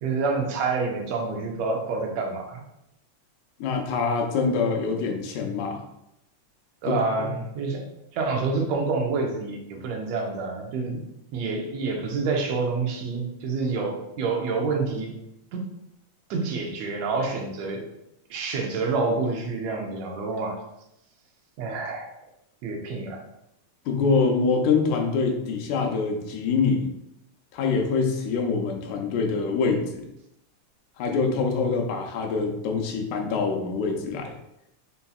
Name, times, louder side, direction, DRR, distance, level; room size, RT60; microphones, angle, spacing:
voice 1, 0.0-2.6 6.8-7.8 8.1-11.0 11.3-15.1 15.5-15.6 16.3-17.8 18.3-20.6 21.6-22.1 22.6-23.2, right 4 dB, 75° right, 2 dB, 1.7 m, -28 dB
voice 2, 3.6-5.8 6.9-7.3 23.9-26.9 27.5-30.1 31.0-34.3, left 4 dB, 85° left, 2 dB, 2.0 m, -25 dB
5.4 x 2.7 x 2.3 m, 0.83 s
omnidirectional pair, 3.3 m